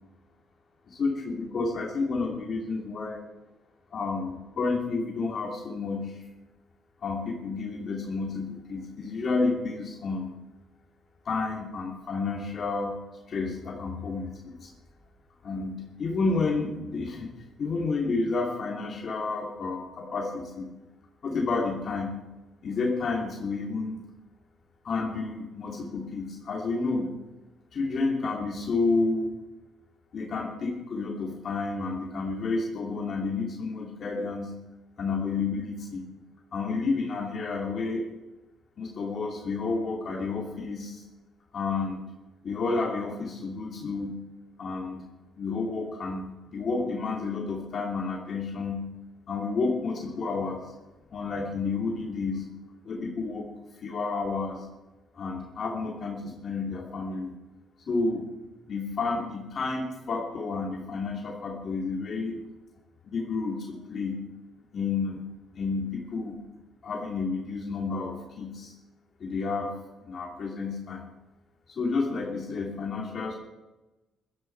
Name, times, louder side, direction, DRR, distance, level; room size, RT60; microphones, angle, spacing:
voice 1, 0.9-3.2 3.9-6.3 7.0-10.3 11.2-13.0 13.3-14.7 15.4-17.3 17.6-20.7 21.2-22.2 22.6-24.0 24.8-27.1 27.7-29.3 30.1-34.5 35.0-36.1 36.5-38.0 38.8-41.0 41.5-42.0 42.4-44.2 44.6-45.0 45.4-48.9 49.3-50.7 51.1-52.5 52.8-53.5 53.7-54.7 55.1-57.4 57.9-58.2 58.7-62.4 63.0-64.2 64.7-65.2 65.5-66.4 66.8-68.7 69.2-69.7 70.1-71.0 71.7-73.4, left 3 dB, 45° left, 0 dB, 2.8 m, -30 dB
15.5 x 12.5 x 4.6 m, 1.0 s
cardioid pair, 105°, 0 cm